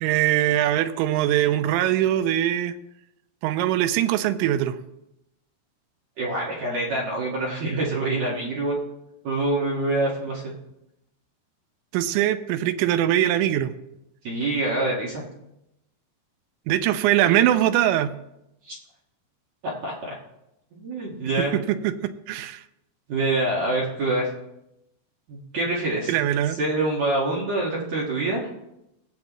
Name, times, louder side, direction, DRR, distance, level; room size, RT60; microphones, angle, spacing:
voice 1, 0.0-2.7 3.4-4.8 11.9-13.7 16.7-18.1 21.4-22.6 26.1-26.6, right 12 dB, 90° right, 10 dB, 2.9 m, -22 dB
voice 2, 6.2-8.8 9.2-10.5 14.2-15.2 18.7-18.8 19.6-20.1 20.7-21.6 23.1-24.3 25.3-26.1 26.6-28.5, right 2 dB, 55° right, -4 dB, 2.3 m, -26 dB
20.0 x 7.7 x 3.1 m, 0.86 s
omnidirectional pair, 5.2 m